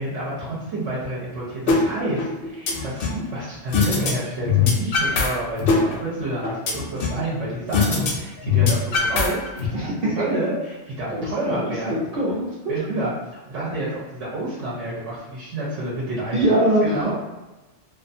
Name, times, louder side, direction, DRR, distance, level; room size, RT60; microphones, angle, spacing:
voice 1, 0.0-9.8 10.1-12.0 12.7-17.1, right 1 dB, 85° right, -6 dB, 1.0 m, -29 dB
sound 1, 1.7-1.8 2.2-3.2 3.7-4.1 4.4-5.3 5.6-7.2 7.7-8.1 8.4-9.7, left 5 dB, 60° left, 0.6 m, -20 dB
voice 2, 11.1-12.5 16.3-17.1, right 1 dB, 60° right, -8 dB, 0.7 m, -22 dB
2.4 x 2.4 x 2.6 m, 1.1 s
omnidirectional pair, 1.2 m